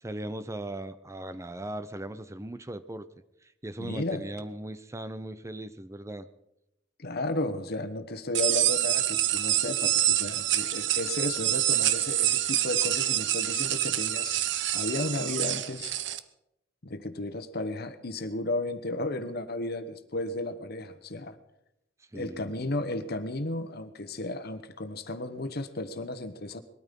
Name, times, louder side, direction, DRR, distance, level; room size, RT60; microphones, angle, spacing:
voice 1, 0.0-3.1 3.4-6.3 22.1-22.5, right 1 dB, 15° right, 13 dB, 0.6 m, -38 dB
voice 2, 3.8-4.2 7.0-14.4 14.7-15.9 16.8-21.4 22.1-26.6, left 2 dB, 55° left, 10 dB, 1.2 m, -33 dB
sound 1, 8.3-16.2, right 13 dB, 65° right, 0.8 m, -27 dB
21.0 x 13.0 x 5.3 m, 0.86 s
head